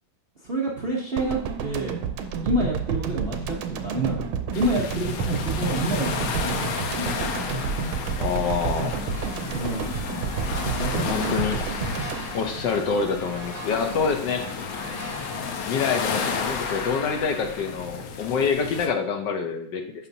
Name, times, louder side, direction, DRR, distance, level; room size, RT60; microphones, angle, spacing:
voice 1, 0.4-2.0 2.4-4.3 4.5-7.3 9.5-9.9 10.5-11.6, right 2 dB, 50° right, -4 dB, 0.7 m, -28 dB
sound 1, 1.2-13.4 13.6-13.8, right 5 dB, 90° right, 1.5 m, -30 dB
sound 2, 4.5-18.9, left 5 dB, 85° left, 1.6 m, -32 dB
voice 2, 8.2-8.9 10.9-11.6 12.3-14.5 15.7-19.8, left 5 dB, 70° left, 5 dB, 1.2 m, -26 dB
sound 3, 9.1-15.6, right 1 dB, 35° left, 3.1 m, -41 dB
8.3 x 5.7 x 2.7 m, 0.67 s
omnidirectional pair, 2.3 m